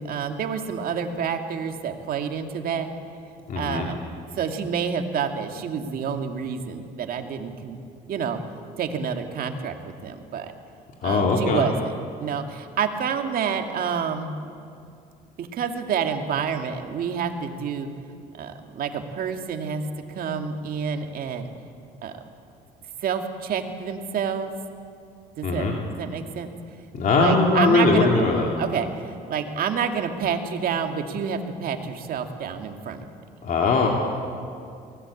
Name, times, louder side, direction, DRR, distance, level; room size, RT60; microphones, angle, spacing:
voice 1, 0.0-2.9 3.6-4.0 4.3-7.8 8.1-8.4 8.8-9.7 10.0-10.5 11.0-11.9 12.2-14.4 15.4-17.9 18.4-21.5 22.0-22.1 23.0-24.5 25.4-25.7 26.0-26.5 27.2-28.3 28.6-33.1, right 7 dB, 60° right, 5 dB, 2.2 m, -28 dB
voice 2, 3.5-3.9 11.0-11.7 25.4-25.7 26.9-28.5 33.4-33.9, left 3 dB, 55° left, 0 dB, 2.7 m, -20 dB
23.5 x 18.0 x 8.6 m, 2.4 s
cardioid pair, 110°, 17 cm